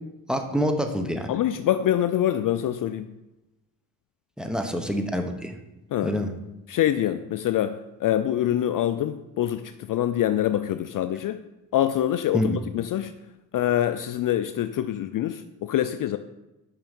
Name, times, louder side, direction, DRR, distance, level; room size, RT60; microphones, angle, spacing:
voice 1, 0.3-1.3 4.4-5.5 6.0-6.3 12.3-12.6, equal, ahead, 5 dB, 1.0 m, -26 dB
voice 2, 1.3-3.1 5.9-6.1 6.7-11.4 11.7-13.1 13.5-16.2, left 11 dB, 50° left, 11 dB, 0.5 m, -25 dB
5.7 x 5.4 x 5.4 m, 0.96 s
supercardioid pair, 65°, 42 cm